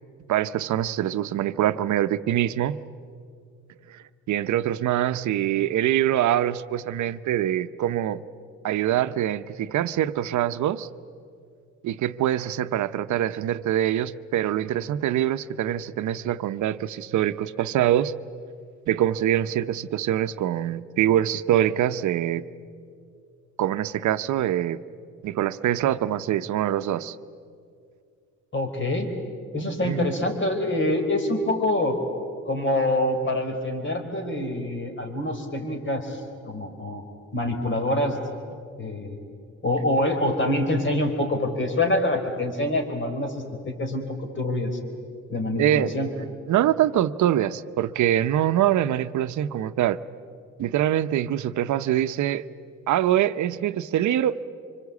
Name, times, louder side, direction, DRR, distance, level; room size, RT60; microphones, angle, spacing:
voice 1, 0.3-2.8 3.9-8.2 8.6-10.9 11.8-18.1 18.9-22.4 23.6-24.8 25.2-27.2 29.6-30.1 45.6-50.0 50.6-52.5 52.9-54.4, right 11 dB, 75° right, 12 dB, 0.8 m, -24 dB
voice 2, 28.5-29.1 29.5-32.0 32.4-37.0 37.3-38.2 38.8-39.2 39.6-44.7 45.3-46.1, left 1 dB, 40° left, 5 dB, 4.4 m, -25 dB
25.5 x 24.5 x 8.4 m, 2.3 s
cardioid pair, 90°, 30 cm